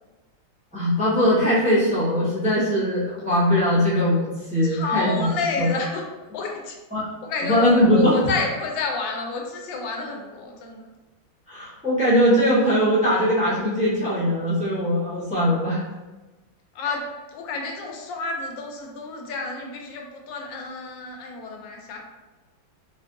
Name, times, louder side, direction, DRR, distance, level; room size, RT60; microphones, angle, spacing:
voice 1, 0.7-5.3 5.6-5.7 6.9-7.1 7.4-8.2 11.5-15.8, equal, 5° right, -10 dB, 0.8 m, -20 dB
voice 2, 4.6-6.0 6.3-6.8 7.2-10.8 16.7-17.0 17.3-22.0, left 4 dB, 85° left, 1 dB, 1.4 m, -30 dB
4.1 x 2.6 x 2.6 m, 1.2 s
omnidirectional pair, 2.0 m